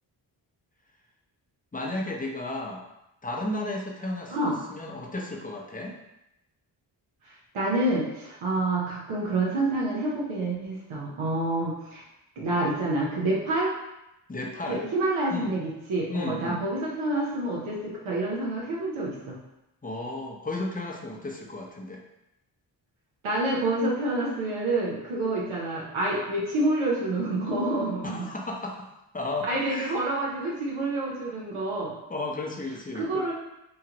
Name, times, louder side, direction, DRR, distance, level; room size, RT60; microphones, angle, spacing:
voice 1, 1.7-2.8 3.2-6.0 14.3-14.8 15.3-15.5 16.1-16.6 19.8-22.0 28.0-28.9 29.1-30.0 32.1-33.3, left 2 dB, 20° left, 0 dB, 0.6 m, -34 dB
voice 2, 7.5-12.0 12.4-13.7 14.7-19.4 23.2-28.2 29.5-31.9 32.9-33.3, right 2 dB, 85° right, -4 dB, 0.8 m, -28 dB
3.0 x 2.4 x 2.9 m, 0.88 s
cardioid pair, 45°, 48 cm